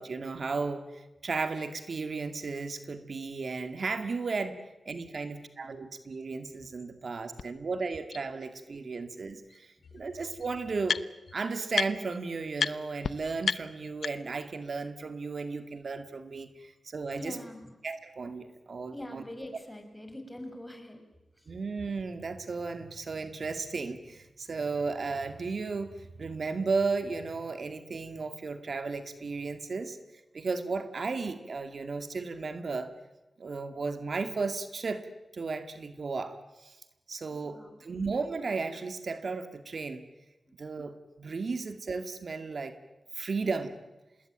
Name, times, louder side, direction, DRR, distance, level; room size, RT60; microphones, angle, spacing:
voice 1, 0.0-11.0 11.3-17.4 17.8-19.2 21.5-30.0 30.3-32.9 33.4-35.0 35.3-36.8 37.1-40.0 40.6-42.8 43.1-43.7, right 4 dB, 60° right, 9 dB, 2.1 m, -34 dB
sound 1, 7.4-7.5 8.1-8.2 9.5-9.6 9.8-11.3 11.7-12.2 12.6-12.7 13.0-13.1 13.4-14.4, left 6 dB, 80° left, 0.8 m, -32 dB
voice 2, 17.1-17.7 18.9-21.0 21.4-21.5 37.3-37.8, left 1 dB, 10° left, 6 dB, 6.3 m, -44 dB
27.0 x 20.5 x 9.2 m, 1.0 s
cardioid pair, 65°, 0 cm